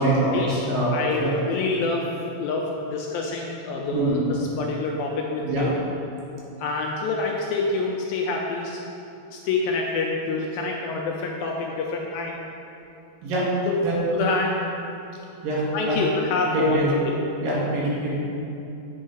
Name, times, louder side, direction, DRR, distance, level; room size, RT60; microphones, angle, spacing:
voice 1, 0.0-0.9 1.2-1.3 3.9-4.3 5.4-5.6 13.2-13.5 13.8-14.0 15.4-16.0 16.5-16.9 17.4-18.1, right 2 dB, 65° right, -7 dB, 3.2 m, -24 dB
voice 2, 0.9-2.1 2.4-5.7 6.6-8.8 9.3-12.4 13.7-13.8 14.1-14.6 15.7-17.0, left 3 dB, 80° left, 0 dB, 2.2 m, -27 dB
8.7 x 5.4 x 5.0 m, 2.8 s
omnidirectional pair, 4.6 m